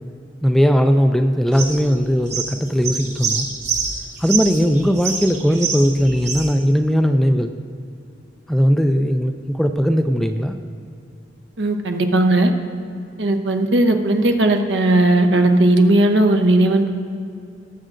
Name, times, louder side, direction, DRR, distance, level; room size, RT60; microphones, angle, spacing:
voice 1, 0.4-3.5 4.2-7.5 8.5-10.6, equal, ahead, 6 dB, 0.3 m, -18 dB
sound 1, 1.5-6.5, right 6 dB, 40° right, 1.3 m, -26 dB
voice 2, 11.6-12.5 13.2-16.9, right 1 dB, 70° right, 5 dB, 0.8 m, -16 dB
19.0 x 7.6 x 2.5 m, 2.4 s
head